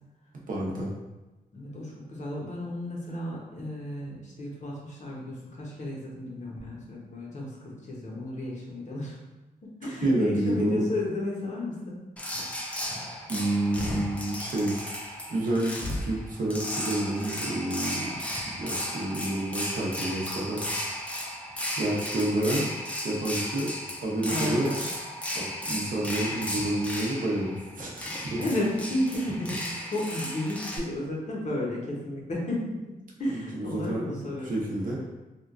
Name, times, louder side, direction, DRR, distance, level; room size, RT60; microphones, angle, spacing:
voice 1, 0.5-0.9 10.0-10.8 13.3-14.9 15.3-18.1 18.6-20.9 21.7-22.7 23.0-23.7 24.0-24.7 25.3-28.4 33.6-34.0 34.4-35.0, right 1 dB, 60° right, -3 dB, 0.7 m, -29 dB
voice 2, 1.5-9.2 9.6-12.0 24.2-24.9 28.3-34.6, left 1 dB, 50° left, -3 dB, 0.7 m, -33 dB
sound 1, 12.2-30.8, left 1 dB, 10° left, 0.4 m, -34 dB
2.9 x 2.3 x 2.4 m, 1.1 s
wide cardioid pair, 115°, 16 cm